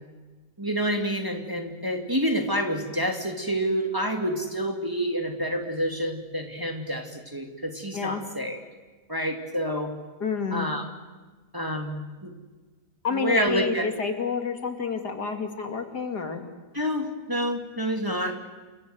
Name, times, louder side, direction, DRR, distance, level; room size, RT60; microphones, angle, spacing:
voice 1, 0.6-8.6 9.1-9.9 10.5-10.8 11.5-12.3 13.1-13.9 16.7-18.5, equal, 10° right, 3 dB, 2.5 m, -28 dB
voice 2, 7.9-8.2 10.2-10.7 13.0-16.4, left 6 dB, 80° left, 5 dB, 3.1 m, -29 dB
28.5 x 25.0 x 7.9 m, 1.3 s
omnidirectional pair, 1.7 m